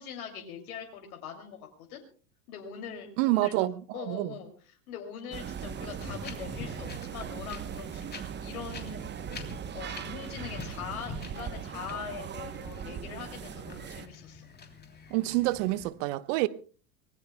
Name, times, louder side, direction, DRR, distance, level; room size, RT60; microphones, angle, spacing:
voice 1, 0.0-2.0 2.5-8.1 8.4-9.0 9.5-14.5, left 7 dB, 70° left, 2.9 m, -42 dB
voice 2, 3.2-3.7 4.1-4.3 15.1-16.5, right 19 dB, 55° right, 1.0 m, -27 dB
sound 1, 5.3-14.1, right 8 dB, 25° right, 0.9 m, -39 dB
Wind, 6.0-15.9, left 4 dB, 20° left, 3.1 m, -46 dB
25.0 x 19.5 x 2.2 m
hypercardioid pair, 90°, 45 cm